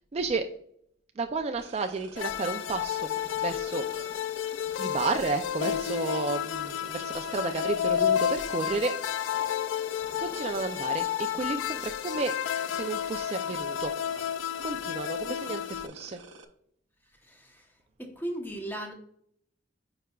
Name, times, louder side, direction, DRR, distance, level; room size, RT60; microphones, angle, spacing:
voice 1, 0.1-0.5 1.2-3.1 3.4-3.8 4.8-8.9 10.2-12.3 12.7-13.9 14.6-16.2, right 3 dB, 35° right, 0.3 m, -32 dB
sound 1, 1.6-16.4, right 3 dB, 80° right, 0.7 m, -49 dB
sound 2, 2.2-15.9, left 10 dB, 90° left, 0.3 m, -31 dB
voice 2, 17.3-17.7 18.0-18.9, right 1 dB, 10° left, 0.9 m, -36 dB
9.1 x 4.8 x 2.3 m
head